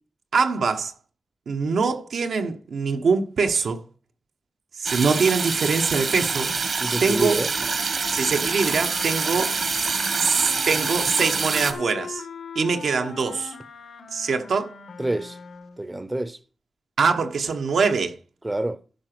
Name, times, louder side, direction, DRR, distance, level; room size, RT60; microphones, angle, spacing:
voice 1, 0.3-0.9 1.5-3.8 4.7-6.5 7.0-7.5 8.1-9.6 10.2-12.2 12.5-13.6 14.1-14.7 17.0-18.2, right 5 dB, 85° right, 1.2 m, -23 dB
sound 1, 4.8-11.7, right 4 dB, 60° right, 1.3 m, -26 dB
voice 2, 6.8-7.5 15.0-15.4 15.8-16.4 18.4-18.8, right 1 dB, 15° right, 0.6 m, -27 dB
sound 2, 8.5-15.9, left 5 dB, 80° left, 1.1 m, -40 dB
12.0 x 5.1 x 6.0 m
wide cardioid pair, 150°, 0 cm